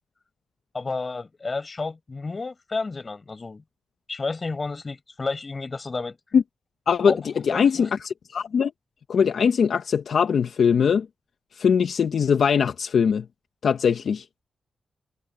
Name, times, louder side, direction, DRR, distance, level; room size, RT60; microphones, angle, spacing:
voice 1, 0.7-3.6 4.1-6.2 7.1-7.9, left 3 dB, 35° left, 7.7 m, -31 dB
voice 2, 7.4-8.7 9.1-11.1 11.6-13.2 13.6-14.2, left 6 dB, 70° left, 1.3 m, -21 dB
cardioid pair, 95°, 0 cm